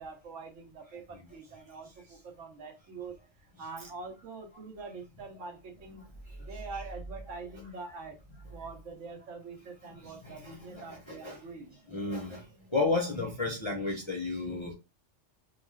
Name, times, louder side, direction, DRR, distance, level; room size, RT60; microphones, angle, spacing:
voice 1, 0.0-6.0 6.4-8.2 8.5-11.8, right 4 dB, 75° right, 1.1 m, -44 dB
voice 2, 10.0-11.4 11.9-12.4 12.7-14.7, left 3 dB, 30° left, 0.5 m, -33 dB
2.4 x 2.4 x 3.2 m
omnidirectional pair, 1.3 m